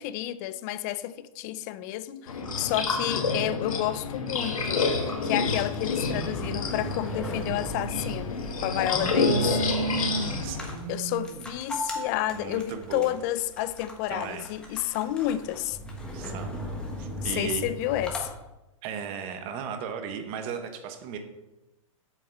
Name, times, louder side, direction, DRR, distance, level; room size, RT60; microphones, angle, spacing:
voice 1, 0.0-4.9 5.2-8.3 8.6-9.4 10.9-15.8 17.2-18.3, left 14 dB, 30° left, 0.4 m, -30 dB
sound 1, 2.3-10.8, left 4 dB, 85° left, 1.7 m, -29 dB
sound 2, 4.5-18.3, equal, 5° left, 1.2 m, -39 dB
voice 2, 8.9-11.5 12.3-13.2 14.1-15.0 16.1-16.6 17.0-17.6 18.8-21.2, right 6 dB, 30° right, 1.1 m, -35 dB
7.9 x 6.9 x 4.6 m
hypercardioid pair, 145°, 18 cm